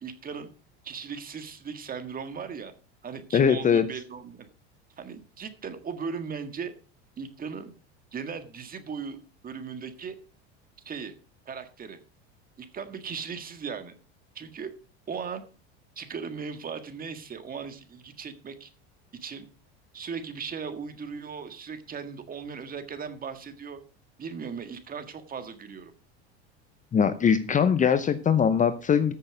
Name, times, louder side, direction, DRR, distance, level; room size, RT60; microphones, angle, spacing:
voice 1, 0.0-0.5 0.8-2.7 3.0-4.5 5.0-6.7 7.2-7.7 8.1-10.2 10.8-11.1 11.5-12.0 12.6-13.9 14.4-14.7 15.1-15.4 16.0-18.7 19.2-19.5 19.9-23.8 24.2-25.9, right 6 dB, 25° right, 9 dB, 1.7 m, -37 dB
voice 2, 3.3-3.9 26.9-29.1, left 7 dB, 25° left, 12 dB, 0.7 m, -21 dB
14.0 x 6.7 x 5.0 m, 0.36 s
supercardioid pair, 115°, 32 cm